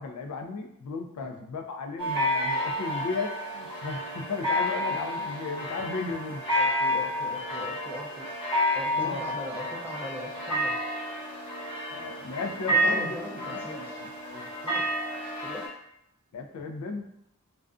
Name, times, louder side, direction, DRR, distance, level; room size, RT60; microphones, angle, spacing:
voice 1, 0.0-6.4 8.9-9.2 11.9-13.2 13.5-14.5 16.3-17.1, left 4 dB, 85° left, 4 dB, 0.3 m, -35 dB
sound 1, 2.0-15.7, equal, 20° left, 0.9 m, -30 dB
voice 2, 6.6-8.3 8.7-10.8 12.7-14.1 14.6-15.0 15.4-15.7, left 1 dB, 10° right, -3 dB, 0.4 m, -40 dB
2.4 x 2.2 x 2.4 m, 0.78 s
head